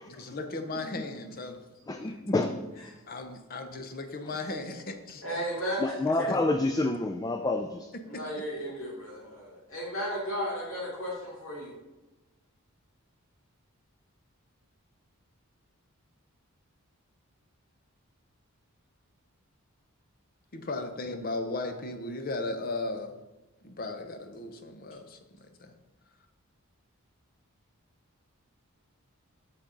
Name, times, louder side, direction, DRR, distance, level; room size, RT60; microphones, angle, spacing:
voice 1, 0.1-1.6 3.1-5.2 6.3-6.4 7.9-8.4 20.5-23.1 23.6-25.2 25.6-25.7, left 2 dB, 40° left, 7 dB, 0.8 m, -36 dB
voice 2, 1.9-2.7 5.8-7.9, left 2 dB, 15° left, 6 dB, 0.3 m, -28 dB
voice 3, 5.2-6.3 8.1-11.7, equal, 65° left, -4 dB, 2.7 m, -34 dB
8.3 x 6.0 x 3.9 m, 1.1 s
head